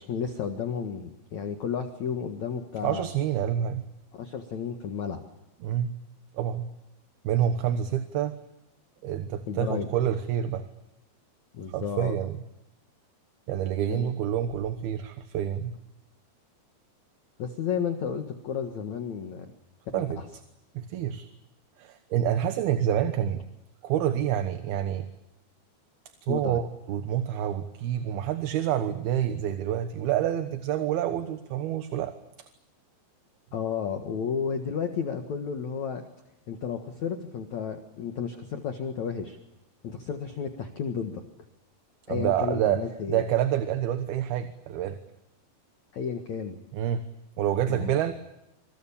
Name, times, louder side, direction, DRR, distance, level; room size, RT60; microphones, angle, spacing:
voice 1, 0.0-3.1 4.1-5.2 9.5-9.9 11.5-12.1 13.9-14.1 17.4-19.5 19.9-20.0 26.3-26.6 33.5-36.0 36.5-39.4 39.8-41.2 42.1-43.2 45.9-46.6 47.7-47.9, left 7 dB, 55° left, 5 dB, 2.3 m, -32 dB
voice 2, 2.8-3.8 5.6-6.0 6.3-6.7 7.2-8.4 9.0-10.6 11.7-12.3 13.5-15.7 19.9-20.2 20.7-21.3 21.8-23.4 23.8-25.1 26.2-32.1 42.1-42.8 43.1-45.0 46.7-47.0 47.4-48.1, right 10 dB, 70° right, 9 dB, 2.9 m, -27 dB
27.0 x 26.0 x 7.2 m, 0.90 s
omnidirectional pair, 5.1 m